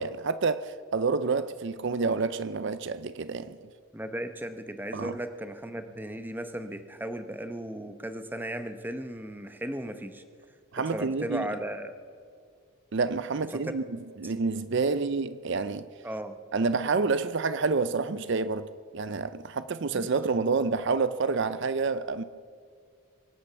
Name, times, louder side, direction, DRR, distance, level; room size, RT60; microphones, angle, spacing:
voice 1, 0.0-3.6 4.9-5.2 10.7-11.5 12.9-13.8 14.2-15.9 16.5-22.2, right 4 dB, 55° right, 0.5 m, -28 dB
voice 2, 3.9-10.2 10.9-12.0 13.5-13.6 14.2-14.3 14.8-15.0 16.0-16.4 19.9-20.1, right 1 dB, 10° right, 0.9 m, -36 dB
24.0 x 8.7 x 6.8 m
head